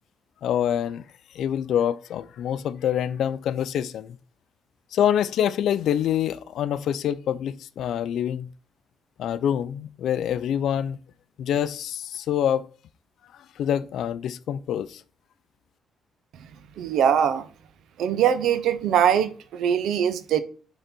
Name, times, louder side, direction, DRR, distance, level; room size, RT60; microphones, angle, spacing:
voice 1, 0.4-1.0 1.3-4.2 4.9-8.5 9.2-11.0 11.4-12.7 13.3-15.0, left 9 dB, 70° left, 0.4 m, -26 dB
voice 2, 16.3-17.5 18.0-20.4, right 9 dB, 75° right, 0.7 m, -22 dB
7.9 x 3.9 x 4.3 m
cardioid pair, 150°, 0 cm